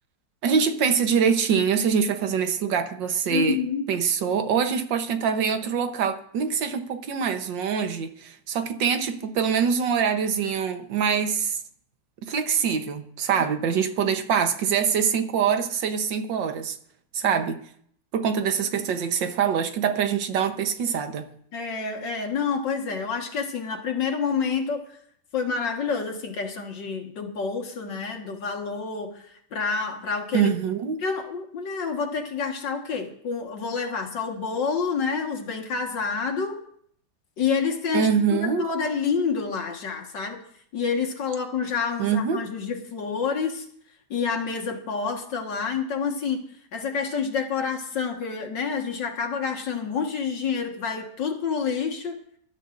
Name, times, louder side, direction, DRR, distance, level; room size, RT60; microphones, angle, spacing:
voice 1, 0.4-3.6 3.9-11.6 12.2-16.8 17.1-17.6 18.1-21.3 30.3-31.0 37.9-38.7 42.0-42.5, right 7 dB, 85° right, 8 dB, 1.7 m, -24 dB
voice 2, 3.3-3.9 17.2-17.4 21.5-24.8 25.3-30.5 31.0-36.6 37.4-40.4 40.7-43.7 44.1-46.4 46.7-52.2, left 5 dB, 75° left, 3 dB, 2.3 m, -28 dB
23.5 x 12.5 x 2.6 m, 0.65 s
omnidirectional pair, 1.9 m